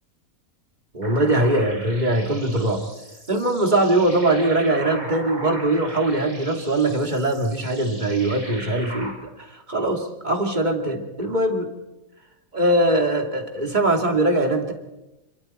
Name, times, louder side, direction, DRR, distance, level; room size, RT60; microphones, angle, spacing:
voice 1, 0.9-2.8 3.3-11.7 12.5-14.7, right 1 dB, 30° right, 3 dB, 2.8 m, -21 dB
sound 1, 1.0-9.1, right 1 dB, 80° right, 6.3 m, -39 dB
29.5 x 23.5 x 4.5 m, 0.97 s
omnidirectional pair, 1.5 m